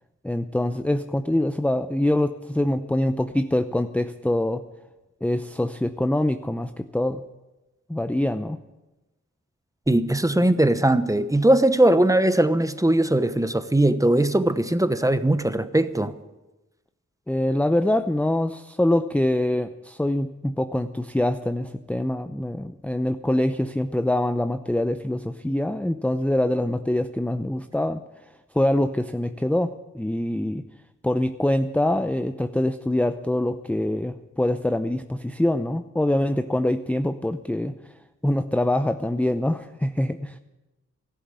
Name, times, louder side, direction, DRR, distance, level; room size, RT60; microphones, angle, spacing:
voice 1, 0.2-4.6 5.2-7.2 7.9-8.6 17.3-28.0 28.5-30.6 31.0-37.7 38.2-40.4, left 1 dB, 5° left, 0.6 m, -24 dB
voice 2, 9.9-16.1, right 1 dB, 10° right, 0.9 m, -20 dB
13.5 x 11.5 x 8.2 m
cardioid pair, 55°, 29 cm